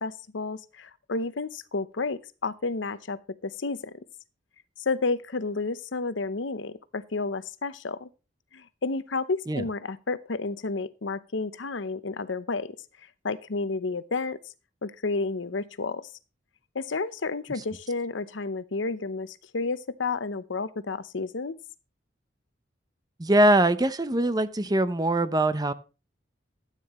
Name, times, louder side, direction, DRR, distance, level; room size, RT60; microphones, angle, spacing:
voice 1, 0.0-4.0 4.8-8.1 8.5-12.7 13.2-14.4 14.8-16.1 16.7-21.6, left 3 dB, 75° left, 0.8 m, -31 dB
voice 2, 23.2-25.7, right 1 dB, 20° right, 0.7 m, -22 dB
13.5 x 9.1 x 3.1 m
head